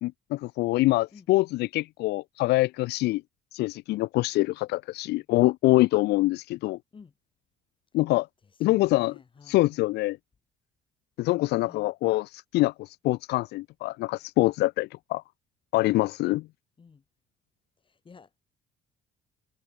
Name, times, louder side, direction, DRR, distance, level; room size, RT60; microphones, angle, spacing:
voice 1, 0.0-3.2 3.5-6.8 7.9-8.3 8.6-9.2 9.5-10.2 11.2-15.2 15.7-16.4, left 19 dB, 80° left, 0.6 m, -25 dB
voice 2, 8.7-9.7 11.6-11.9 16.8-17.0 17.8-18.4, left 5 dB, 30° left, 6.6 m, -52 dB
cardioid pair, 110°, 17 cm